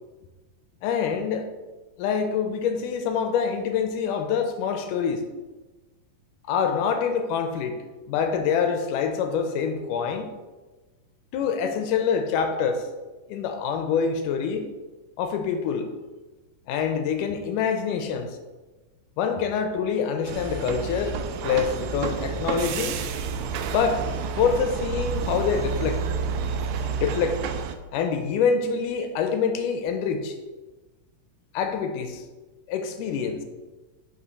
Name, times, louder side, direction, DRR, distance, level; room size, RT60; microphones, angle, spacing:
voice 1, 0.8-1.5 2.0-5.2 6.5-7.8 8.1-10.3 11.3-12.9 13.3-14.7 15.2-15.9 16.7-18.3 19.2-23.0 23.7-24.0 24.4-26.0 27.0-27.4 27.9-30.4 31.5-32.2 32.7-33.4, left 6 dB, 80° left, 6 dB, 2.1 m, -25 dB
sound 1, 20.3-27.8, right 5 dB, 85° right, 2.2 m, -29 dB
5.5 x 5.4 x 4.0 m, 1.2 s
omnidirectional pair, 3.8 m